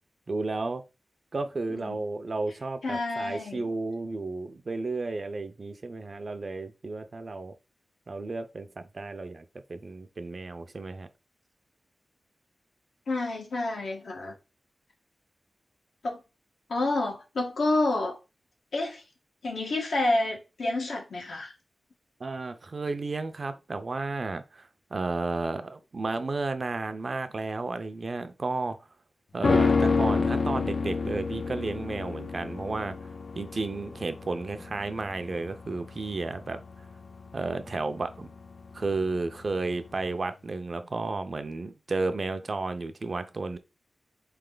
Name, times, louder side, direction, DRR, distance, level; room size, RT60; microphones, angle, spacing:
voice 1, 0.3-0.8 1.3-7.5 8.1-9.4 9.7-11.1 22.2-28.8 29.3-33.0 33.3-36.6 37.3-38.3 38.7-43.6, right 3 dB, 45° right, 0.5 m, -32 dB
voice 2, 2.8-3.6 13.1-14.3 16.0-16.2 16.7-18.2 18.7-19.0 19.4-21.5, left 2 dB, 90° left, 1.5 m, -29 dB
sound 1, 29.4-38.8 39.1-39.2, left 4 dB, 65° left, 0.5 m, -29 dB
4.1 x 3.3 x 3.8 m
wide cardioid pair, 105°, 0 cm